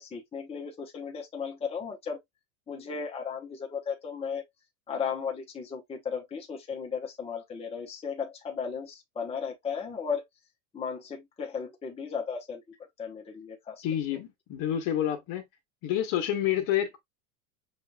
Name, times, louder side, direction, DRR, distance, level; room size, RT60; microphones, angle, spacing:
voice 1, 0.0-2.2 2.7-4.4 4.9-10.2 10.7-12.6 13.0-13.8, left 6 dB, 15° left, 0.9 m, -35 dB
voice 2, 13.8-15.4 15.8-17.0, left 11 dB, 50° left, 1.4 m, -28 dB
6.2 x 2.5 x 2.3 m
supercardioid pair, 120°, 42 cm